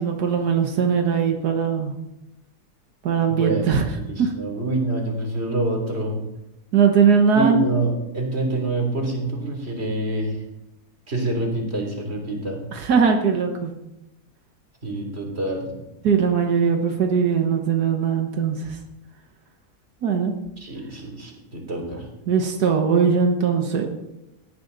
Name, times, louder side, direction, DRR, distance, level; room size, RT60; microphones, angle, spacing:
voice 1, 0.0-1.9 3.0-3.8 4.2-4.3 6.7-7.6 12.7-13.7 16.0-18.8 20.0-20.3 22.3-23.9, right 6 dB, 90° right, 4 dB, 1.8 m, -20 dB
voice 2, 3.3-6.2 7.3-10.4 11.1-12.6 14.8-15.8 20.6-22.1, right 2 dB, 40° right, 2 dB, 3.6 m, -26 dB
18.5 x 13.0 x 4.0 m, 0.91 s
omnidirectional pair, 1.6 m